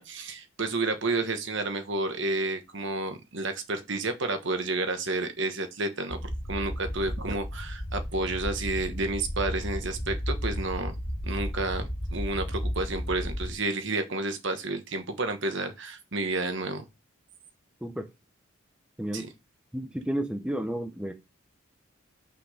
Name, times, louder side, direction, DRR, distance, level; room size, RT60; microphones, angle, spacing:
voice 1, 0.0-10.9 11.2-16.8 19.1-19.3, right 2 dB, 55° right, 1.3 m, -31 dB
sound 1, 6.1-13.5, equal, 45° left, 2.4 m, -33 dB
voice 2, 19.7-21.1, right 1 dB, 5° right, 0.6 m, -31 dB
6.0 x 5.9 x 5.0 m
head